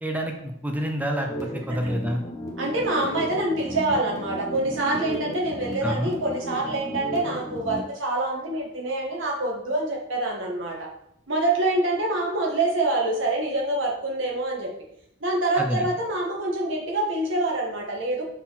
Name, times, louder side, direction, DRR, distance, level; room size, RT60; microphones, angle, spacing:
voice 1, 0.0-2.2 5.8-6.1 15.6-15.9, equal, 10° right, 2 dB, 0.6 m, -28 dB
sound 1, 1.2-7.9, equal, 15° left, 1.1 m, -34 dB
voice 2, 2.6-10.9 11.3-14.7 15.2-18.2, right 2 dB, 85° right, -1 dB, 1.6 m, -26 dB
5.7 x 4.2 x 4.1 m, 0.73 s
head